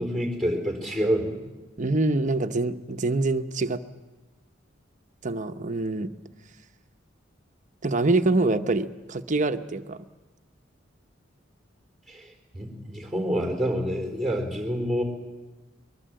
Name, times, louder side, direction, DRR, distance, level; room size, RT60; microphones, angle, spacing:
voice 1, 0.0-1.4 12.1-12.3 12.5-15.0, equal, 5° left, 3 dB, 4.2 m, -27 dB
voice 2, 1.8-3.8 5.2-6.1 7.8-10.0, right 2 dB, 40° right, 8 dB, 0.9 m, -25 dB
23.0 x 21.5 x 7.7 m, 1.2 s
head